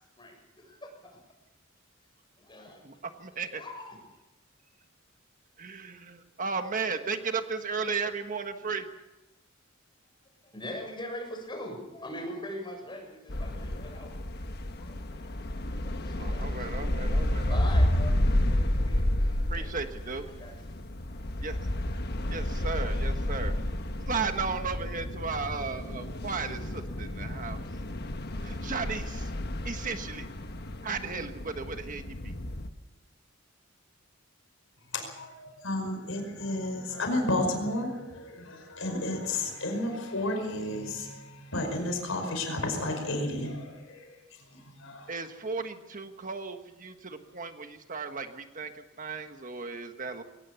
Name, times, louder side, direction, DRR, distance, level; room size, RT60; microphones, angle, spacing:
voice 1, 0.2-0.9 2.4-2.8 3.3-4.0 10.4-14.1 14.7-15.3 15.7-16.9 17.5-19.8 20.4-20.7, left 1 dB, 25° left, 2 dB, 7.1 m, -42 dB
voice 2, 2.8-3.6 5.6-8.9 16.2-17.6 19.5-20.3 21.4-21.6 22.3-23.5 24.1-27.6 28.4-29.3 29.6-30.3 30.8-32.3 45.1-50.2, right 4 dB, 40° right, 7 dB, 1.4 m, -35 dB
sound 1, 13.3-32.7, left 1 dB, 55° left, 1.4 m, -31 dB
voice 3, 34.9-44.2 44.5-45.1, left 1 dB, 80° left, 5 dB, 5.3 m, -32 dB
22.0 x 18.5 x 7.1 m, 1.0 s
head